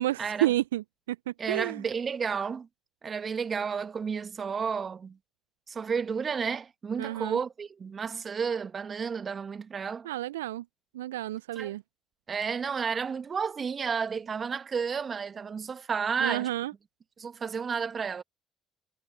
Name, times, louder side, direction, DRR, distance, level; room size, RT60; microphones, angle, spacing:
voice 1, 0.0-1.8 7.0-7.4 10.0-10.6 10.9-11.8 16.2-16.7, right 15 dB, 75° right, 0.6 m, -30 dB
voice 2, 1.4-2.7 3.0-5.2 5.7-10.1 11.6-11.7 12.3-16.5 17.2-18.2, right 6 dB, 40° right, 2.0 m, -32 dB
figure-of-eight pair, 50°, 0 cm